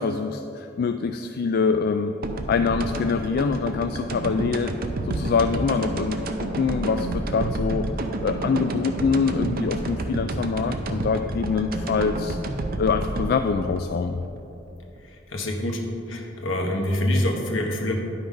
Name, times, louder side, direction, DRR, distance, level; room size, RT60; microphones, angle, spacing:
voice 1, 0.0-2.1 2.5-4.7 5.1-7.9 8.2-12.4 12.8-14.2, left 5 dB, 50° left, 7 dB, 0.3 m, -24 dB
sound 1, 2.2-15.0, right 2 dB, 50° right, 0.6 m, -30 dB
voice 2, 15.0-15.8 16.1-18.0, left 1 dB, 70° left, 1 dB, 1.3 m, -26 dB
10.5 x 6.0 x 5.1 m, 2.8 s
head